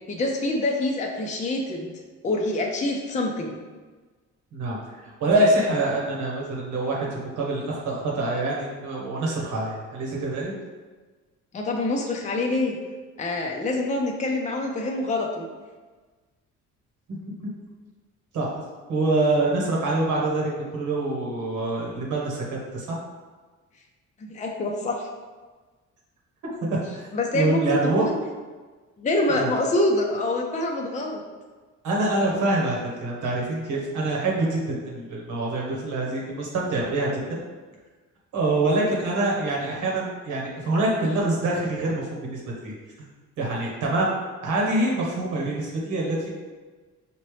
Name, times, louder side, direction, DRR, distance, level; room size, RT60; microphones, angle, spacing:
voice 1, 0.1-1.9 2.2-3.6 11.5-12.8 13.2-15.5 24.2-25.1 27.1-28.1 29.0-31.2, left 2 dB, 25° left, 1 dB, 0.5 m, -26 dB
voice 2, 4.5-10.5 18.3-18.5 18.9-23.0 26.6-26.7 26.9-27.1 27.3-28.1 29.3-29.5 31.8-37.4 38.3-42.7 43.4-44.1 44.4-46.3, right 2 dB, 85° right, -3 dB, 1.2 m, -25 dB
5.1 x 2.8 x 3.2 m, 1.4 s
cardioid pair, 90°, 30 cm